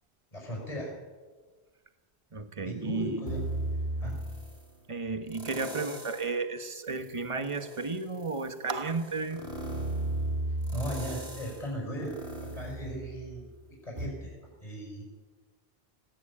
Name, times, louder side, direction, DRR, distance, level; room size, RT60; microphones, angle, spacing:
voice 1, 0.3-0.9 2.6-3.4 4.0-4.2 10.7-13.5 13.8-15.0, equal, 35° left, 0 dB, 6.1 m, -37 dB
voice 2, 2.3-3.3 4.9-9.4, right 4 dB, 30° right, 8 dB, 1.5 m, -33 dB
sound 1, 3.3-4.7 5.3-6.4 6.8-13.5 14.0-14.1, right 1 dB, 80° right, 4.6 m, -36 dB
19.0 x 17.5 x 8.7 m, 1.4 s
omnidirectional pair, 1.1 m